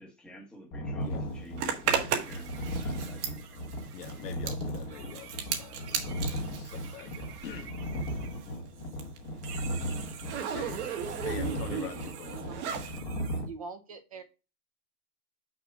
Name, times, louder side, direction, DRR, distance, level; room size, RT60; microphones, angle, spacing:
voice 1, 0.0-2.5 2.8-3.4, equal, ahead, 1.3 m, -51 dB
sound 1, 0.7-13.5, equal, 25° left, 1.2 m, -37 dB
Zipper (clothing), 1.6-7.8 8.0-13.0, right 7 dB, 45° right, 1.5 m, -35 dB
sound 2, 2.1-9.1 9.4-13.4, right 9 dB, 70° right, 1.6 m, -50 dB
voice 2, 3.9-7.8 10.5-12.4, left 9 dB, 80° left, 1.5 m, -45 dB
voice 3, 13.4-14.2, right 4 dB, 25° right, 0.4 m, -43 dB
6.1 x 5.4 x 4.6 m
supercardioid pair, 170°, 47 cm